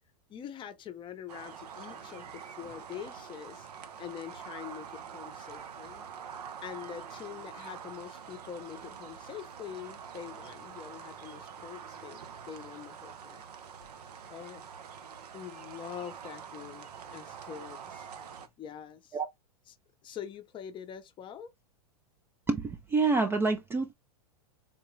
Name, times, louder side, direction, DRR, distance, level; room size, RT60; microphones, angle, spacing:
voice 1, 0.3-3.7 4.0-6.1 6.6-13.4 14.3-14.7 15.3-18.1 18.6-19.2 19.7-19.8 20.0-21.5, left 9 dB, 25° left, 0.6 m, -44 dB
sound 1, 1.3-18.5, right 7 dB, 85° right, 0.7 m, -46 dB
voice 2, 22.5-23.9, right 4 dB, 10° right, 0.3 m, -27 dB
3.9 x 2.2 x 3.0 m
hypercardioid pair, 120°, 20 cm